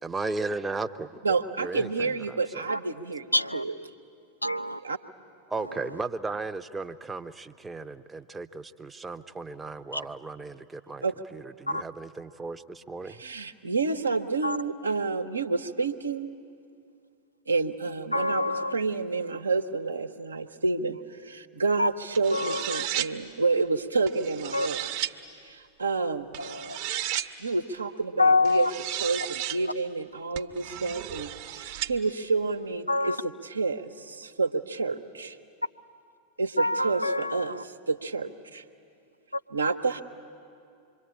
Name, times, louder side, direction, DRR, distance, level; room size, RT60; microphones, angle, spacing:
voice 1, 0.0-1.2 1.6-2.7 5.5-11.0 11.3-13.2, right 3 dB, 10° right, 9 dB, 0.8 m, -35 dB
voice 2, 1.2-3.3 3.5-3.7 4.8-5.0 11.0-11.1 13.1-16.3 17.5-24.9 25.4-26.4 27.4-28.7 29.0-33.1 33.4-35.4 36.4-38.6 39.5-40.0, right 4 dB, 75° right, 7 dB, 1.0 m, -29 dB
voice 3, 3.3-3.6 4.4-4.8 9.9-10.0 11.7-11.8 14.4-14.6 18.1-18.7 21.8-21.9 22.3-22.9 24.5-24.7 26.4-26.8 28.2-28.7 32.9-33.2 36.6-37.6 39.3-39.4, left 2 dB, 85° left, 10 dB, 0.6 m, -26 dB
sound 1, 22.1-23.1 24.1-25.1 26.3-27.3 28.5-29.6 30.4-31.9, right 12 dB, 45° right, 1.0 m, -34 dB
26.0 x 23.0 x 8.8 m, 2.5 s
figure-of-eight pair, 90°, 0 cm